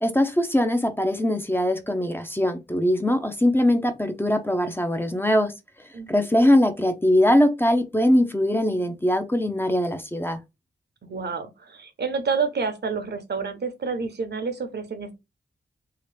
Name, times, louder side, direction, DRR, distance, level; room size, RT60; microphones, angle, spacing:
voice 1, 0.0-5.5 6.1-10.4, left 1 dB, 10° left, 0.6 m, -21 dB
voice 2, 5.9-6.3 11.0-15.1, right 5 dB, 65° right, 0.8 m, -29 dB
3.0 x 2.9 x 3.3 m
wide cardioid pair, 75°, 19 cm